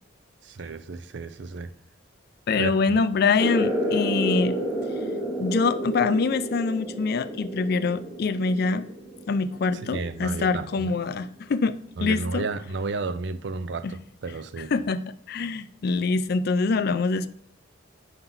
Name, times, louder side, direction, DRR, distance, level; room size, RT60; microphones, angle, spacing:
voice 1, 0.4-1.7 2.6-3.0 9.8-10.9 12.0-14.7, right 3 dB, 65° right, 12 dB, 0.5 m, -32 dB
voice 2, 2.5-4.6 5.4-8.9 9.3-12.4 13.8-13.9 14.7-15.0 15.3-17.3, left 4 dB, 55° left, 13 dB, 0.4 m, -24 dB
sound 1, 3.4-10.5, equal, 10° right, 1.3 m, -30 dB
5.5 x 3.9 x 5.7 m, 0.62 s
head